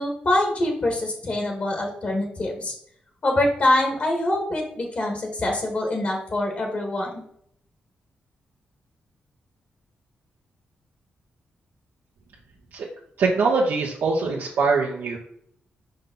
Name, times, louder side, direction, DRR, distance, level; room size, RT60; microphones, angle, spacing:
voice 1, 0.0-2.7 3.2-7.2, left 1 dB, 45° left, 1 dB, 1.8 m, -24 dB
voice 2, 13.2-15.2, right 4 dB, 75° right, -3 dB, 1.1 m, -22 dB
5.6 x 5.3 x 3.9 m, 0.68 s
cardioid pair, 115°, 4 cm